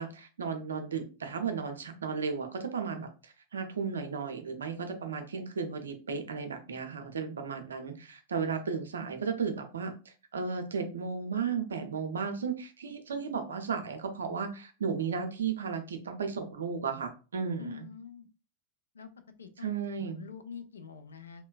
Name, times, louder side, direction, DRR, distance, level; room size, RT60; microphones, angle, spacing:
voice 1, 0.0-9.9 10.3-17.9 19.6-20.2, right 5 dB, 70° right, 6 dB, 0.5 m, -34 dB
voice 2, 17.6-18.3 18.9-19.1 19.4-19.7 20.0-21.5, left 6 dB, 70° left, 8 dB, 0.3 m, -45 dB
2.8 x 2.2 x 2.3 m, 0.34 s
figure-of-eight pair, 90°, 0 cm